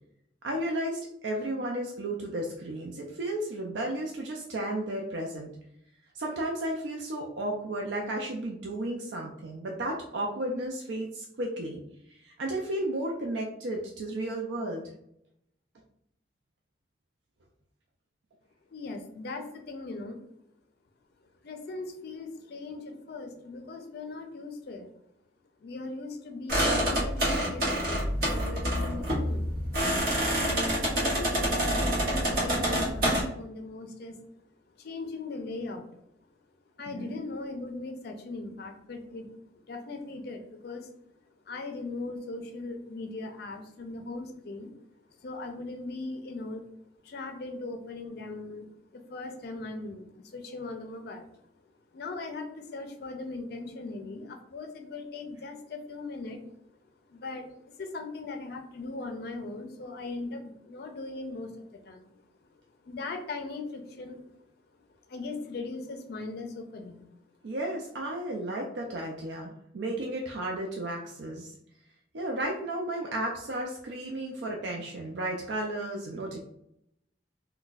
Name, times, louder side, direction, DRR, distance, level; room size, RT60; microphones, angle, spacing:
voice 1, 0.4-5.5 6.1-11.8 12.1-14.9 36.9-37.2 67.4-71.5 72.1-76.4, right 1 dB, 75° right, 0 dB, 0.4 m, -33 dB
voice 2, 18.7-20.2 21.4-24.9 25.6-29.5 30.3-34.2 34.7-35.9 36.8-40.9 41.5-44.7 45.1-46.7 47.0-51.5 51.9-56.4 57.1-62.1 62.8-64.3 64.9-67.1, left 3 dB, 60° left, 5 dB, 0.4 m, -39 dB
sound 1, 26.5-33.2, equal, 55° right, 1.1 m, -27 dB
2.3 x 2.2 x 3.9 m, 0.76 s
head